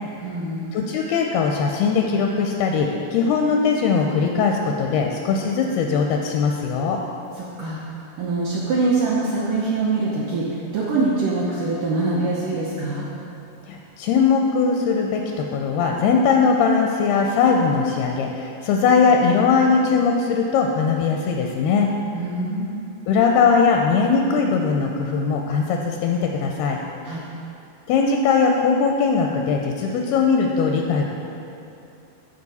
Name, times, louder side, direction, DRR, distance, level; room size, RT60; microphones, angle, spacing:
voice 1, 0.2-0.7 7.4-7.8 8.2-13.1 22.2-22.8 27.0-27.2, right 3 dB, 75° right, -6 dB, 2.0 m, -24 dB
voice 2, 0.7-7.0 13.7-21.9 23.1-26.8 27.9-31.1, left 5 dB, 80° left, 2 dB, 2.3 m, -20 dB
14.5 x 5.1 x 4.1 m, 2.7 s
omnidirectional pair, 4.8 m